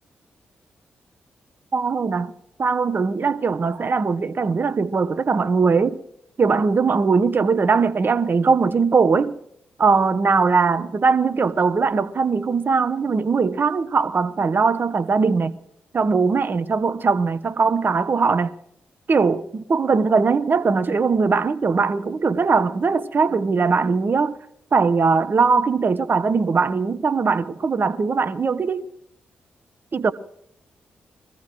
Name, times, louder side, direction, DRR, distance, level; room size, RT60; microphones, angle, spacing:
voice 1, 1.7-2.3 2.6-6.0 6.4-9.3 9.8-15.5 15.9-18.5 19.1-24.4 24.7-28.8 29.9-30.1, right 4 dB, 50° right, 1.1 m, -20 dB
22.5 x 14.5 x 3.1 m
hypercardioid pair, 40°, 5 cm